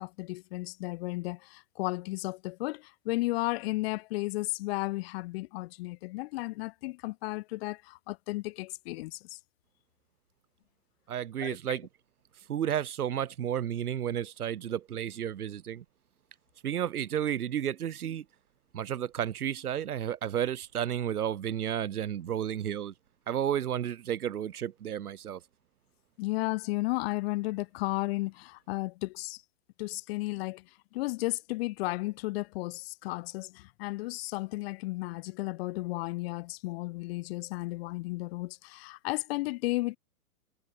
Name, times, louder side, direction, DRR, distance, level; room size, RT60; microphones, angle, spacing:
voice 1, 0.0-9.4 11.4-11.8 26.2-29.4 29.8-40.0, left 21 dB, 40° left, 1.9 m, -34 dB
voice 2, 11.1-11.9 12.5-15.8 16.6-18.2 18.7-22.9 23.3-25.4, right 10 dB, 65° right, 4.3 m, -32 dB
hypercardioid pair, 135°, 47 cm